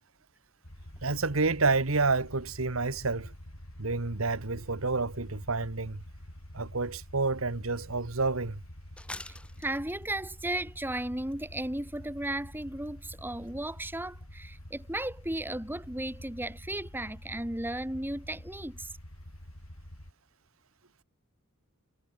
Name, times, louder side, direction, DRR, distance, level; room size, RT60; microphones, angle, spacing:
sound 1, 0.6-20.1, equal, 90° left, 5.1 m, -47 dB
voice 1, 1.0-3.3 3.8-6.0 6.5-8.6, right 3 dB, 75° right, 1.6 m, -29 dB
sound 2, 7.5-7.6 8.0-8.1 9.0-10.4 10.9-12.0 12.2-12.3 12.6-12.9 13.1-13.2 13.5-13.6, left 1 dB, 5° left, 1.8 m, -45 dB
voice 2, 9.6-18.9, right 1 dB, 10° right, 2.2 m, -35 dB
head